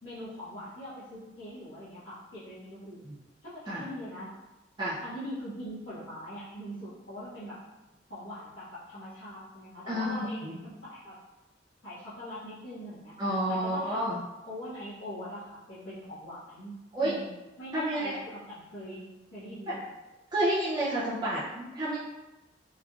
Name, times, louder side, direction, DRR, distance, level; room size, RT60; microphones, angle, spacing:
voice 1, 0.0-3.1 3.4-4.3 5.0-7.6 8.1-11.2 11.8-13.1 13.5-14.0 14.5-16.8 17.0-17.3 17.6-19.9, equal, 80° left, -15 dB, 1.4 m, -42 dB
voice 2, 9.9-10.6 13.2-14.2 16.9-17.2 17.7-18.2 19.7-19.8 20.3-22.0, right 1 dB, 25° right, -8 dB, 0.5 m, -30 dB
3.7 x 2.9 x 2.4 m, 1.0 s
head